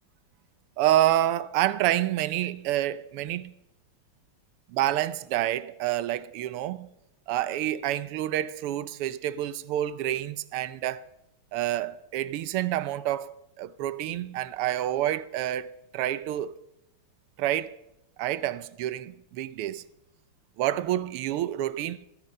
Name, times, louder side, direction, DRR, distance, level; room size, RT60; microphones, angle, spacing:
voice 1, 0.8-3.5 4.7-6.9 7.3-11.0 11.5-16.5 17.4-17.8 18.2-19.8 20.6-22.1, right 13 dB, 85° right, 1.7 m, -28 dB
16.5 x 16.0 x 5.3 m
omnidirectional pair, 2.4 m